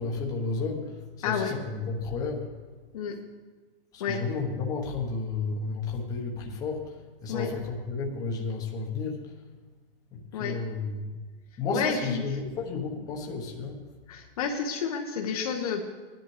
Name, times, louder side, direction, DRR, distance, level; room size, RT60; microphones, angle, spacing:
voice 1, 0.0-2.5 3.9-9.3 10.1-11.1 11.6-13.8, left 4 dB, 10° left, -1 dB, 1.1 m, -32 dB
voice 2, 1.2-1.5 2.9-3.2 4.0-4.2 7.3-7.5 10.3-10.6 11.7-12.2 14.1-15.8, left 6 dB, 35° left, 2 dB, 0.9 m, -30 dB
18.5 x 10.5 x 3.3 m, 1.4 s
hypercardioid pair, 165°, 31 cm